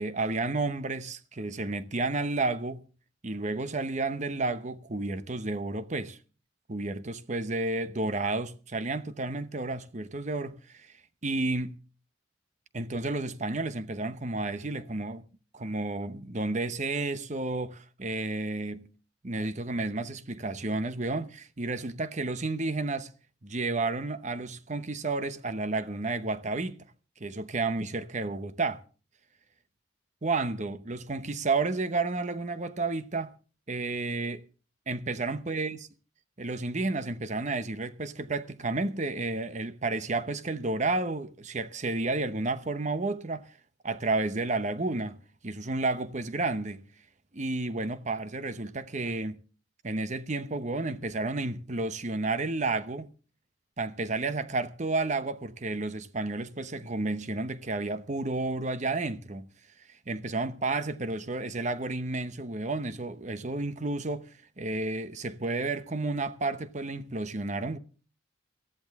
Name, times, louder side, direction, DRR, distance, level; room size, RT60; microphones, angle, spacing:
voice 1, 0.0-2.8 3.2-6.2 6.7-10.9 11.2-11.8 12.7-15.3 15.5-18.9 19.2-23.1 23.4-26.9 27.2-28.8 30.2-33.3 33.7-34.4 34.9-35.8 36.4-43.5 43.8-46.8 47.3-49.4 49.8-53.1 53.8-59.5 60.1-67.8, right 3 dB, 35° right, 0.9 m, -31 dB
19.0 x 14.0 x 3.6 m
head